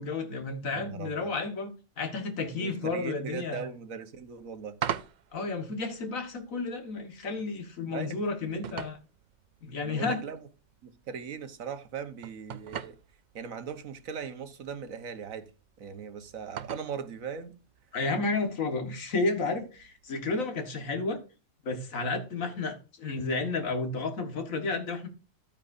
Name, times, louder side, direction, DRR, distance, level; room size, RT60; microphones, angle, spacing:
voice 1, 0.0-1.7 2.0-3.6 5.3-9.0 9.6-10.2 17.9-21.2 21.6-25.1, left 3 dB, 85° left, 2.0 m, -32 dB
voice 2, 0.7-1.4 2.6-4.8 7.9-8.2 8.5-8.6 9.8-10.4 10.8-13.0 13.3-15.5 15.8-17.5, right 6 dB, 90° right, 1.5 m, -39 dB
sound 1, 4.2-20.6, right 8 dB, 60° right, 0.4 m, -44 dB
12.0 x 9.0 x 2.6 m
omnidirectional pair, 1.4 m